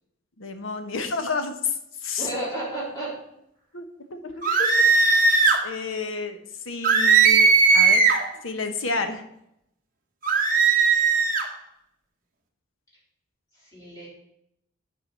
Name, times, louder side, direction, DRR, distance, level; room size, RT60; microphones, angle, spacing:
voice 1, 0.4-1.7 2.0-2.3 3.7-4.3 4.6-4.7 5.6-6.4 6.6-8.1 8.4-9.2, left 4 dB, 90° left, 7 dB, 1.1 m, -30 dB
voice 2, 2.2-3.1 13.7-14.1, right 1 dB, 20° left, -7 dB, 4.2 m, -31 dB
sound 1, 4.4-5.6 6.8-8.3 10.2-11.5, right 4 dB, 45° right, 1.2 m, -18 dB
8.7 x 4.8 x 6.6 m, 0.79 s
head